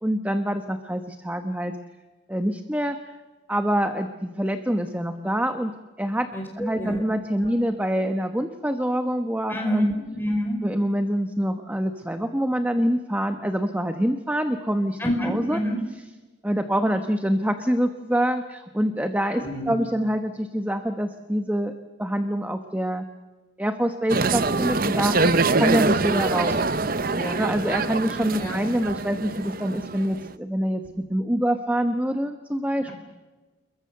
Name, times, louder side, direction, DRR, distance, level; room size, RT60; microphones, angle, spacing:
voice 1, 0.0-1.7 2.3-3.0 3.5-6.3 6.5-9.9 10.6-15.6 16.4-21.7 22.0-23.0 23.6-26.6 27.4-30.8 31.1-32.9, equal, 10° right, 6 dB, 1.1 m, -25 dB
voice 2, 9.5-10.6 15.0-15.7 19.3-19.7 27.1-27.4 28.4-28.6, equal, 10° left, 2 dB, 5.1 m, -27 dB
sound 1, 24.1-30.3, right 3 dB, 45° right, 0.8 m, -24 dB
28.5 x 22.0 x 6.8 m, 1.2 s
head